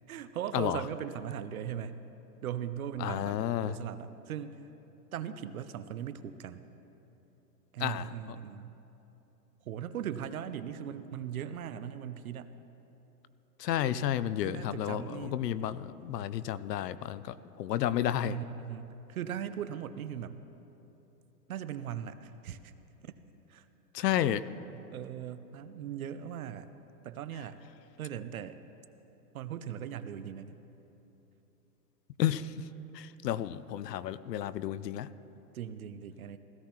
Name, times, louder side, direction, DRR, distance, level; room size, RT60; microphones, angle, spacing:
voice 1, 0.1-2.0 2.4-4.6 5.1-6.6 7.7-8.7 9.7-12.5 14.4-15.4 18.2-20.4 21.5-22.7 23.0-23.1 23.5-23.6 24.1-24.3 24.7-26.7 27.0-27.6 28.0-28.6 29.3-30.6 35.5-36.4, right 9 dB, 60° right, 12 dB, 0.6 m, -39 dB
voice 2, 3.0-3.7 7.8-8.1 13.6-18.4 23.9-24.4 32.2-32.5 32.9-35.1, left 11 dB, 75° left, 16 dB, 0.6 m, -31 dB
17.0 x 15.0 x 3.0 m, 3.0 s
hypercardioid pair, 170°, 50 cm